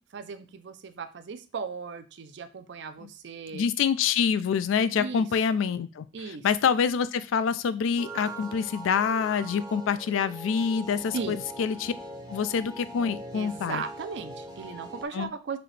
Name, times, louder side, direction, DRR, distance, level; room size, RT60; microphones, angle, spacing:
voice 1, 0.1-3.6 5.0-5.3 6.1-6.5 11.1-11.4 13.3-15.6, right 5 dB, 60° right, 10 dB, 0.4 m, -37 dB
voice 2, 3.5-11.9 12.3-13.8 15.1-15.3, left 6 dB, 75° left, 15 dB, 0.3 m, -26 dB
sound 1, 8.0-15.1, right 1 dB, 20° right, 0.6 m, -42 dB
4.0 x 2.8 x 3.2 m, 0.32 s
head